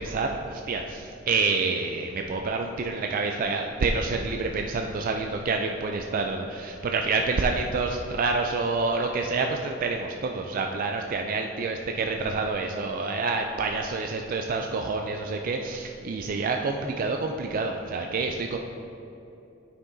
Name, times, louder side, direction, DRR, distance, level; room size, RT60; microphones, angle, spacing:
voice 1, 0.0-18.6, right 3 dB, 45° right, 3 dB, 0.3 m, -28 dB
9.8 x 5.9 x 2.7 m, 2.9 s
head